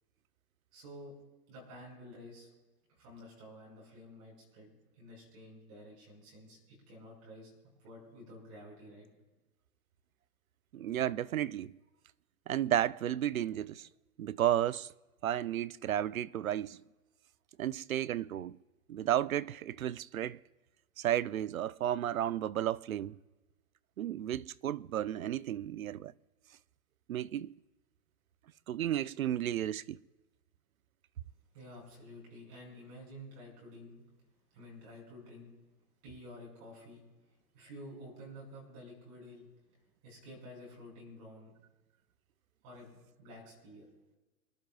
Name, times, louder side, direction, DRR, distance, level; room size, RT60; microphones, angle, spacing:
voice 1, 0.7-1.1 1.5-2.5 3.0-7.5 7.8-9.1 31.5-34.0 34.5-35.5 36.0-37.0 37.5-39.5 40.0-41.5 42.6-43.9, equal, 20° right, 5.8 m, -51 dB
voice 2, 10.7-11.7 12.5-13.9 14.2-14.9 15.2-16.8 17.6-18.6 18.9-20.4 21.0-23.2 24.0-26.1 27.1-27.5 28.7-30.0, right 11 dB, 65° right, 0.5 m, -33 dB
27.5 x 11.5 x 2.4 m
hypercardioid pair, 180°, 46 cm